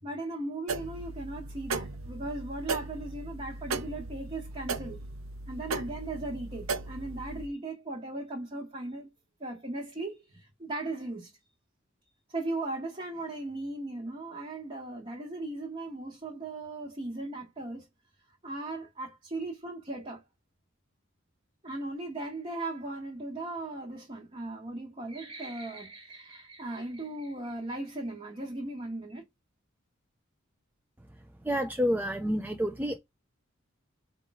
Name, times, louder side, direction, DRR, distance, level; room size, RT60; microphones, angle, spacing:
voice 1, 0.0-5.0 5.5-9.1 9.4-11.3 12.3-17.9 18.4-20.2 21.6-29.2, right 2 dB, 30° right, 0.9 m, -37 dB
sound 1, 0.7-7.5, right 3 dB, 80° right, 0.6 m, -37 dB
voice 2, 31.4-33.0, equal, 10° right, 0.3 m, -29 dB
4.5 x 2.4 x 3.9 m
head